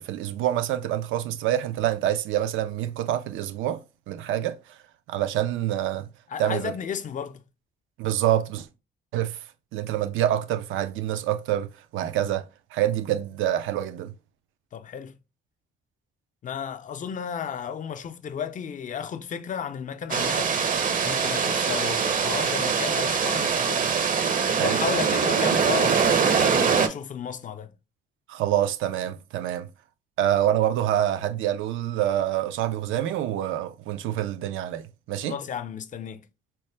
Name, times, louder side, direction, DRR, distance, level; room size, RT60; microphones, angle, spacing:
voice 1, 0.0-3.8 4.1-4.6 5.1-6.1 6.4-6.7 8.0-8.7 9.1-9.4 9.7-14.1 24.5-24.8 28.3-29.7 30.2-35.4, right 12 dB, 85° right, 0.5 m, -26 dB
voice 2, 6.3-7.4 14.7-15.1 16.4-20.6 21.0-23.9 24.6-27.7 35.2-36.2, left 8 dB, 40° left, 0.5 m, -33 dB
sound 1, 20.1-26.9, right 6 dB, 45° right, 0.6 m, -23 dB
4.4 x 2.1 x 3.2 m
cardioid pair, 90°, 20 cm